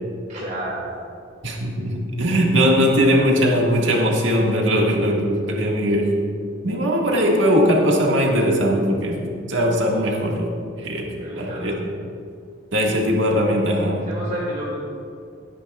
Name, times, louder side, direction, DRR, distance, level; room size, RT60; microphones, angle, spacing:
voice 1, 0.3-0.9 11.2-11.8 14.1-14.8, right 1 dB, 40° right, -6 dB, 2.0 m, -30 dB
voice 2, 1.4-6.1 6.6-9.2 9.5-10.5 10.8-11.8 12.7-14.1, equal, 90° right, -1 dB, 1.6 m, -20 dB
17.0 x 10.0 x 2.3 m, 2.3 s
head